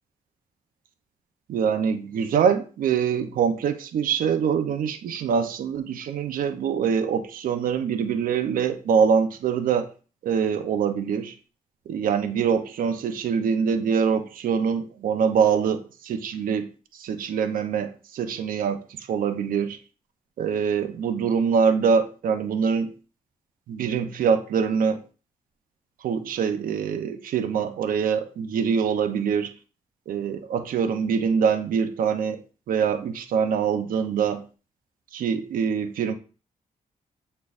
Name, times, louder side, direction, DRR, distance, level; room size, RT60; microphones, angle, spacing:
voice 1, 1.5-9.9 10.2-11.3 11.9-19.8 20.4-22.9 23.7-25.0 26.0-29.5 30.1-32.4 32.7-34.4 35.1-36.1, right 6 dB, 85° right, 0.7 m, -24 dB
8.2 x 4.4 x 2.6 m
cardioid pair, 115°, 14 cm